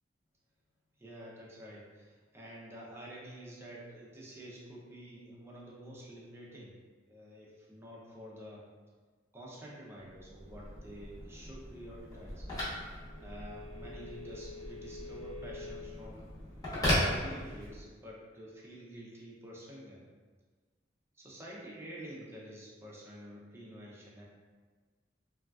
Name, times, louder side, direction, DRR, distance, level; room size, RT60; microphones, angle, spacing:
voice 1, 1.0-6.7 7.1-8.6 9.3-12.5 13.2-16.3 17.0-20.0 21.2-24.2, right 1 dB, 15° right, -5 dB, 0.5 m, -48 dB
Telephone, 10.1-17.9, left 1 dB, 20° left, 1.0 m, -37 dB
3.6 x 2.3 x 2.3 m, 1.4 s
head